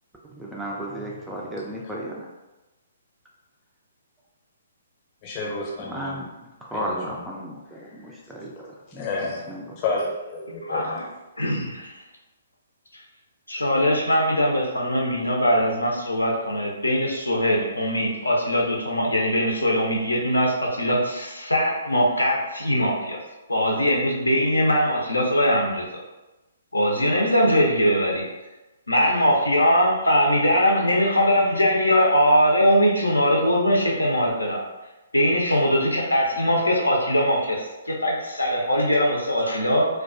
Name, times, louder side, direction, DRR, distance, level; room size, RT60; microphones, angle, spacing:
voice 1, 0.2-2.3 5.9-6.2 6.6-8.5 8.9-9.6, equal, 5° right, -3 dB, 0.3 m, -34 dB
voice 2, 5.2-6.2 6.7-7.2 7.7-8.3 8.9-11.0, left 3 dB, 35° left, -2 dB, 0.6 m, -31 dB
voice 3, 10.7-11.0 11.4-11.9 13.5-23.2 23.5-25.8 26.7-28.2 28.9-34.6 35.1-39.9, equal, 85° left, -1 dB, 0.5 m, -21 dB
2.2 x 2.2 x 2.4 m, 1.1 s
figure-of-eight pair, 125°, 0 cm